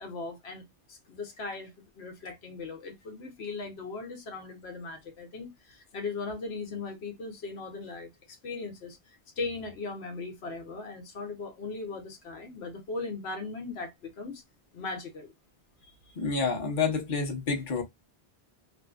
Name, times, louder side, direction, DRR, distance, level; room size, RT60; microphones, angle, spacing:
voice 1, 0.0-14.4 14.7-15.3 15.9-16.1, left 3 dB, 85° left, 1.0 m, -39 dB
voice 2, 16.2-17.8, left 4 dB, 55° left, 1.0 m, -28 dB
2.7 x 2.5 x 2.2 m
omnidirectional pair, 1.1 m